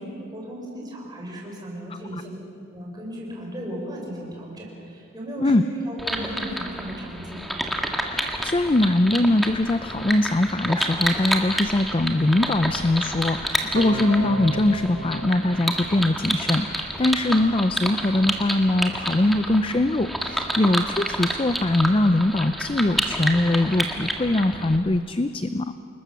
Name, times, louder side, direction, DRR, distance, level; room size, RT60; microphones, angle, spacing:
voice 1, 0.2-2.4 2.7-7.4, equal, 20° right, -2 dB, 5.4 m, -35 dB
sound 1, 6.0-24.8, equal, ahead, 1.7 m, -29 dB
voice 2, 8.0-25.7, left 1 dB, 25° left, 10 dB, 0.5 m, -22 dB
sound 2, 13.8-16.7, equal, 80° right, 2.3 m, -35 dB
29.0 x 20.5 x 7.0 m, 2.7 s
head